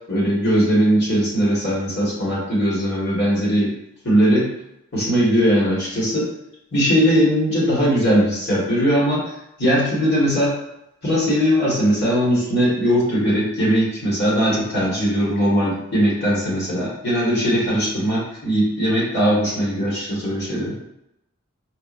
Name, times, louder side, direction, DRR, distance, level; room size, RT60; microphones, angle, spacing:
voice 1, 0.1-3.7 4.0-4.5 4.9-6.3 6.7-9.3 9.6-10.6 11.0-20.8, equal, 50° left, -6 dB, 1.5 m, -19 dB
4.6 x 2.4 x 2.5 m, 0.84 s
head